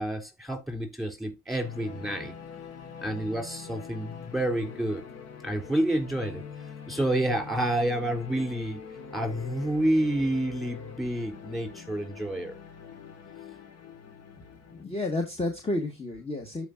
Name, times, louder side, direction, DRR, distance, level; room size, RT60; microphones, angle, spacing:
voice 1, 0.0-2.3 3.0-5.0 5.4-6.4 6.9-8.8 9.1-12.6, right 1 dB, ahead, 3.4 m, -29 dB
sound 1, 1.6-14.8, left 6 dB, 55° left, 1.7 m, -44 dB
voice 2, 14.7-16.7, left 2 dB, 20° left, 1.6 m, -31 dB
13.0 x 4.8 x 2.5 m
cardioid pair, 90°, 30 cm